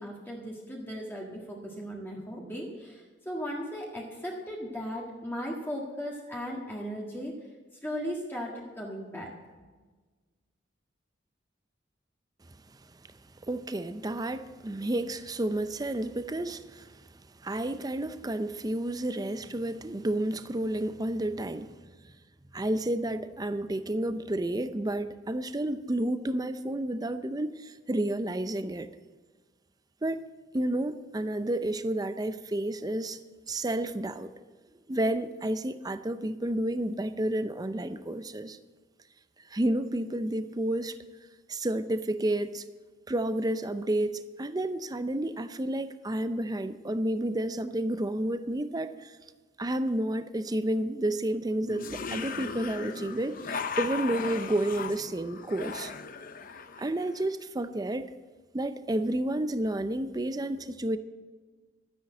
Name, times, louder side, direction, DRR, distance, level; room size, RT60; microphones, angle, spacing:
voice 1, 0.0-7.3 7.8-9.3, equal, 10° left, 1.7 m, -37 dB
voice 2, 13.5-17.1 17.4-21.8 22.5-28.9 30.0-30.2 30.5-33.2 33.5-34.3 34.9-38.6 39.5-41.0 41.5-42.6 43.1-49.2 49.6-55.9 56.8-58.1 58.5-61.0, right 1 dB, 20° right, 0.5 m, -30 dB
sound 1, 51.7-57.2, left 5 dB, 50° left, 0.8 m, -37 dB
12.5 x 10.0 x 7.7 m
head